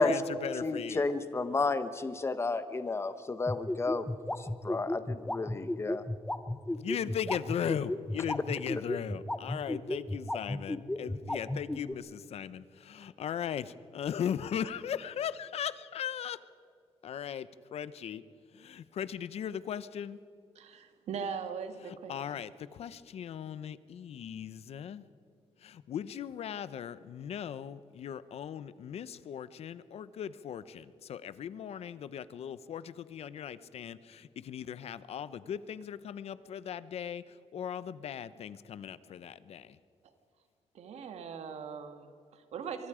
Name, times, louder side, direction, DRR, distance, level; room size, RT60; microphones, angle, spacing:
voice 1, 0.0-1.0 6.8-16.4 17.0-18.2 18.5-20.2 21.9-25.0 25.6-39.8, left 8 dB, 70° left, 15 dB, 0.8 m, -38 dB
voice 2, 0.6-4.0 4.4-6.0, left 3 dB, 25° left, 11 dB, 1.2 m, -31 dB
sound 1, 3.5-11.9, left 1 dB, 10° left, 0.8 m, -33 dB
voice 3, 20.5-22.4 40.7-42.9, right 6 dB, 85° right, 8 dB, 1.7 m, -40 dB
24.5 x 23.0 x 5.0 m, 2.3 s
cardioid pair, 125°, 11 cm